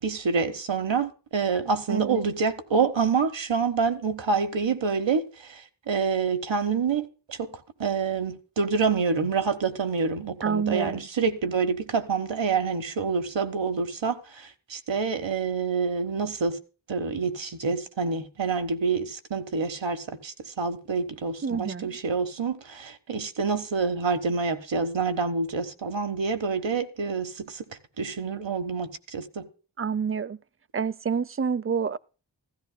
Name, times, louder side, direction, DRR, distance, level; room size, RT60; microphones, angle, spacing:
voice 1, 0.0-7.5 7.8-16.6 16.9-27.6 28.0-29.4, right 5 dB, 80° right, 1.4 m, -27 dB
voice 2, 1.9-2.2 10.4-11.1 21.4-22.0 29.8-30.4 30.7-32.0, right 6 dB, 30° right, 0.5 m, -28 dB
15.5 x 14.0 x 2.2 m
cardioid pair, 40°, 45 cm